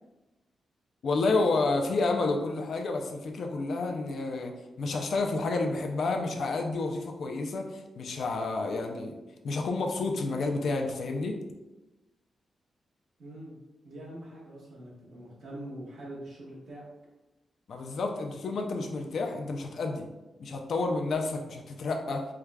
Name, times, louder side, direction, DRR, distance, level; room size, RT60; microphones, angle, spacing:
voice 1, 1.0-11.4 17.7-20.1 20.4-22.3, left 3 dB, 60° left, 3 dB, 0.4 m, -30 dB
voice 2, 13.2-13.6 13.8-16.8, right 1 dB, 60° right, -5 dB, 1.2 m, -43 dB
4.6 x 2.4 x 2.2 m, 1.1 s
wide cardioid pair, 140°, 0 cm